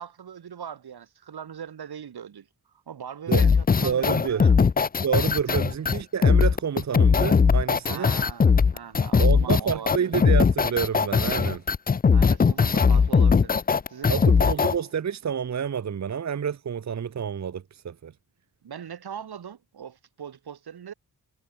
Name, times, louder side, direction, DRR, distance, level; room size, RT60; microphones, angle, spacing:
voice 1, 0.0-2.5 2.9-4.5 5.5-5.6 7.8-10.1 12.1-13.6 13.9-14.2 18.6-20.9, right 8 dB, 90° right, 6.2 m, -40 dB
sound 1, 3.3-14.7, left 5 dB, 25° left, 0.5 m, -19 dB
voice 2, 3.8-4.5 5.0-8.1 9.2-11.6 14.1-18.1, right 7 dB, 45° right, 1.0 m, -28 dB
wide cardioid pair, 145°, 37 cm